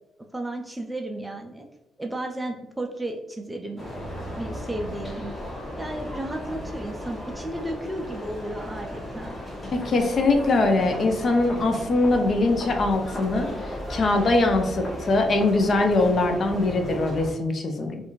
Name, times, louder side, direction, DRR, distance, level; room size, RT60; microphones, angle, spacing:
voice 1, 0.3-1.7 2.0-3.9 4.4-5.3 5.8-9.3, right 1 dB, 10° right, 3 dB, 0.3 m, -33 dB
sound 1, 3.8-17.3, left 1 dB, 15° left, 1.0 m, -35 dB
voice 2, 9.7-13.5 13.9-18.0, left 2 dB, 50° left, 5 dB, 0.5 m, -22 dB
2.5 x 2.4 x 2.9 m, 0.94 s
cardioid pair, 90°, 0 cm